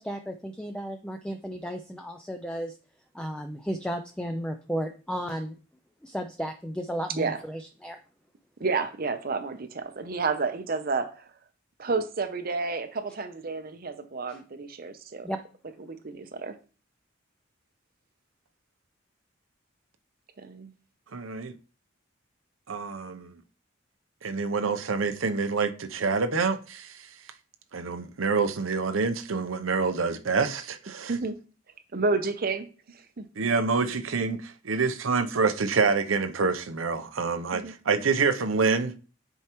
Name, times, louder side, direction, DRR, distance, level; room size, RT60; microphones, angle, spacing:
voice 1, 0.0-2.7 3.1-5.5 6.0-8.0 15.2-15.4, equal, 5° left, 0.4 m, -34 dB
voice 2, 8.6-11.3 11.8-15.3 15.8-16.5 20.4-20.7 31.1-31.4 31.9-32.7 32.9-33.2 35.0-35.3 37.5-37.7, right 4 dB, 50° right, 0.6 m, -30 dB
voice 3, 21.1-21.6 22.7-23.3 24.2-27.1 27.7-31.1 33.4-38.9, right 4 dB, 85° right, 0.7 m, -27 dB
9.3 x 4.5 x 3.0 m
head